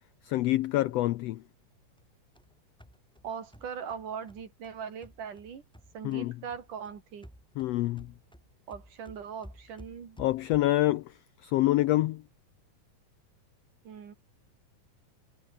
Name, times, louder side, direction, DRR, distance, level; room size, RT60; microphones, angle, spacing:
voice 1, 0.2-1.4 6.0-6.4 7.6-8.1 10.2-11.2 11.4-12.2, left 16 dB, 85° left, 1.4 m, -26 dB
sound 1, 2.0-6.2 6.5-10.9, equal, ahead, 6.6 m, -54 dB
voice 2, 3.2-5.6 5.9-7.3 8.7-10.2 13.8-14.1, right 7 dB, 80° right, 4.6 m, -40 dB
omnidirectional pair, 3.6 m